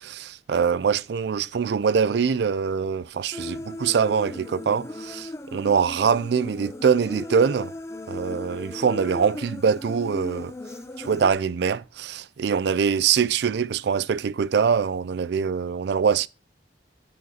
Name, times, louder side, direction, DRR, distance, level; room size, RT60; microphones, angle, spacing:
voice 1, 0.0-7.7 8.1-10.5 11.0-16.3, right 6 dB, 65° right, 0.4 m, -23 dB
Human voice, 3.3-11.3, left 1 dB, 15° left, 0.5 m, -37 dB
7.4 x 6.3 x 4.2 m
head